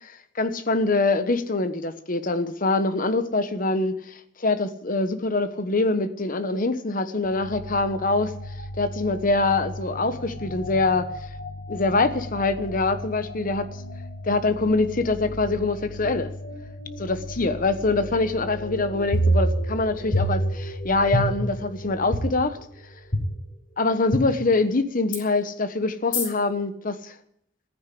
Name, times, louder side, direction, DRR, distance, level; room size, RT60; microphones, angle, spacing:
voice 1, 0.0-8.3 8.8-11.1 11.7-13.7 14.3-16.3 17.0-22.6 23.8-27.1, left 3 dB, 50° left, 10 dB, 1.2 m, -24 dB
sound 1, 7.2-23.6, left 1 dB, 85° left, 2.4 m, -37 dB
sound 2, 19.1-19.8 20.1-20.7 21.1-21.6 22.1-22.2 23.1-23.2 24.1-24.2 25.1-25.2 26.1-26.3, right 1 dB, 65° left, 4.3 m, -23 dB
14.5 x 10.0 x 8.6 m, 0.72 s
head